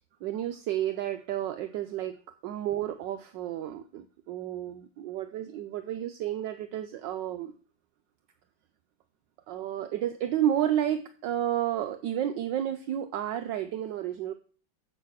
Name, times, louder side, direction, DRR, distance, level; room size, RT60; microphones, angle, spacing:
voice 1, 0.2-7.5 9.5-14.3, right 11 dB, 70° right, 9 dB, 1.2 m, -31 dB
7.4 x 6.4 x 6.3 m, 0.41 s
omnidirectional pair, 2.2 m